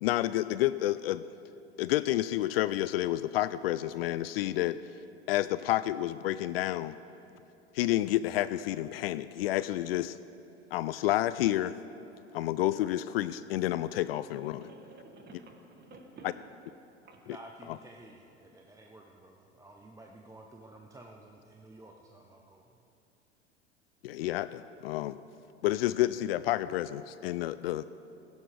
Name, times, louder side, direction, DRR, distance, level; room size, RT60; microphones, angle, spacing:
voice 1, 0.0-1.3 1.8-4.8 5.3-7.0 7.7-10.2 10.7-11.7 12.3-14.6 24.0-25.2 25.6-27.9, left 14 dB, 55° left, 15 dB, 0.4 m, -29 dB
voice 2, 13.9-16.4 16.6-16.7 17.0-17.2, right 2 dB, 25° right, 3 dB, 1.9 m, -52 dB
voice 3, 17.2-22.8, right 2 dB, 10° right, 1 dB, 0.8 m, -52 dB
17.0 x 16.0 x 3.4 m, 2.9 s
figure-of-eight pair, 90°, 36 cm